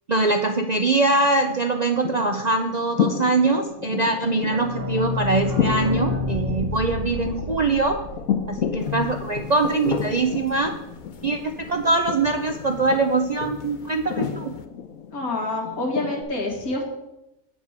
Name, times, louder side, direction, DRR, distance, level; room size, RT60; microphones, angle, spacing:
voice 1, 0.1-8.0 8.5-10.7 11.2-14.5, right 3 dB, 55° right, 5 dB, 0.4 m, -23 dB
sound 1, 1.0-16.2, left 7 dB, 70° left, 1.1 m, -32 dB
sound 2, 4.1-9.7 10.0-10.1 10.3-10.4 10.6-10.7, left 2 dB, 30° right, 1.3 m, -30 dB
sound 3, 8.8-14.6, left 6 dB, 45° left, 0.7 m, -36 dB
voice 2, 15.1-16.8, left 2 dB, 90° left, -1 dB, 2.5 m, -27 dB
8.0 x 5.1 x 7.3 m, 0.93 s
omnidirectional pair, 1.5 m